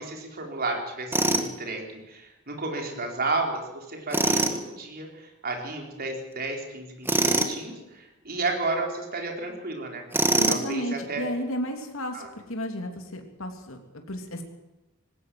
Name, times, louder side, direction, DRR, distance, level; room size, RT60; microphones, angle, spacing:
voice 1, 0.0-10.0 10.5-11.3 12.1-12.3, right 3 dB, 50° right, 1 dB, 4.3 m, -32 dB
Tools, 1.1-1.5 4.1-4.6 7.1-7.6 10.1-10.7, right 2 dB, 10° right, 1.8 m, -23 dB
voice 2, 10.4-13.8 14.1-14.4, equal, 70° left, 4 dB, 3.0 m, -33 dB
19.5 x 17.0 x 7.7 m, 0.99 s
head